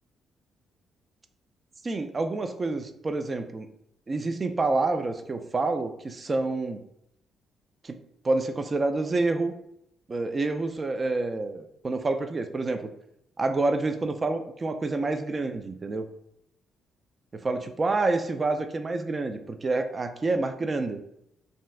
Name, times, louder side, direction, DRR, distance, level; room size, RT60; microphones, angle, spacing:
voice 1, 1.8-3.7 4.1-6.8 7.8-8.0 8.2-9.5 10.1-12.9 13.4-16.1 17.3-21.0, right 3 dB, 30° right, 8 dB, 0.3 m, -28 dB
2.6 x 2.3 x 3.2 m, 0.77 s
cardioid pair, 90°, 0 cm